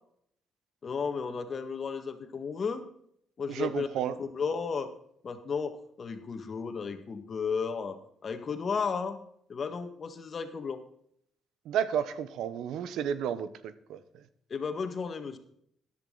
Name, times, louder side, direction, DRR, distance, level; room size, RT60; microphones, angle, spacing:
voice 1, 0.8-2.8 3.4-3.9 4.2-4.9 5.2-9.2 9.5-10.8 14.5-15.4, left 5 dB, 45° left, 8 dB, 1.8 m, -33 dB
voice 2, 3.5-4.2 11.6-14.0, right 9 dB, 85° right, 14 dB, 1.0 m, -32 dB
14.0 x 11.0 x 4.0 m, 0.68 s
cardioid pair, 90°, 0 cm